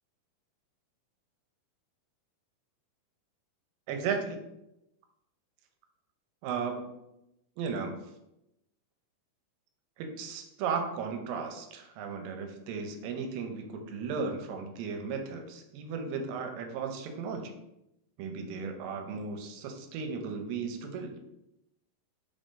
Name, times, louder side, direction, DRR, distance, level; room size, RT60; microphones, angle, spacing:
voice 1, 3.9-4.4 6.4-6.9 7.6-8.0 10.0-17.5 18.2-21.2, right 5 dB, 85° right, 5 dB, 2.3 m, -35 dB
5.4 x 3.6 x 2.5 m, 0.87 s
omnidirectional pair, 4.1 m